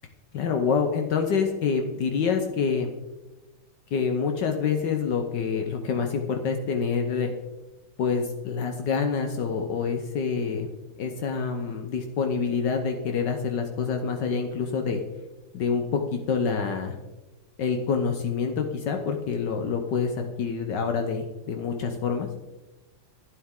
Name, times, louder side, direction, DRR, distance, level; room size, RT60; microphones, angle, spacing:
voice 1, 0.3-2.9 3.9-7.3 8.0-10.7 11.0-15.0 15.5-17.0 17.6-22.3, left 5 dB, 70° left, 4 dB, 1.4 m, -27 dB
11.5 x 9.5 x 3.7 m, 1.1 s
omnidirectional pair, 2.1 m